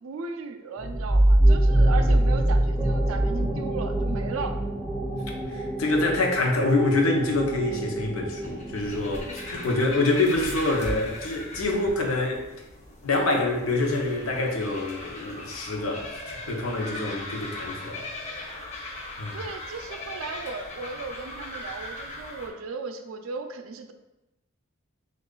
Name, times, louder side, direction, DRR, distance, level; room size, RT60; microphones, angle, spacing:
voice 1, 0.0-4.6 19.3-23.9, right 4 dB, 75° right, 7 dB, 0.4 m, -36 dB
sound 1, 0.8-10.2, right 1 dB, 15° right, 0.5 m, -24 dB
voice 2, 5.5-12.5 13.0-18.0 18.4-18.9 19.2-19.4, left 2 dB, 85° left, 0 dB, 0.7 m, -26 dB
sound 2, 8.4-22.5, left 2 dB, 35° left, 0.6 m, -39 dB
3.1 x 2.3 x 3.7 m, 0.98 s
head